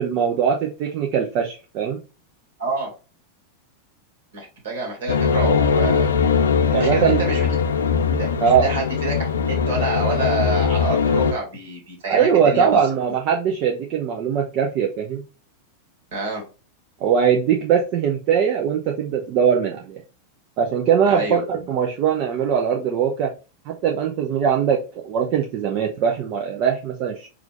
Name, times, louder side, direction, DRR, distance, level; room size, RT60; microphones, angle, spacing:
voice 1, 0.0-2.0 6.7-7.2 8.4-8.6 12.1-15.2 17.0-20.0 20.6-23.3 23.7-24.8 25.0-27.3, right 7 dB, 40° right, 1 dB, 0.6 m, -21 dB
voice 2, 2.6-2.9 4.3-6.1 6.7-7.5 8.1-9.2 9.5-12.8 16.1-16.4 21.1-21.7, right 2 dB, 60° right, 1 dB, 1.7 m, -27 dB
sound 1, 5.1-11.3, left 6 dB, 70° left, 0.5 m, -20 dB
4.7 x 2.5 x 3.1 m, 0.32 s
figure-of-eight pair, 90°, 0 cm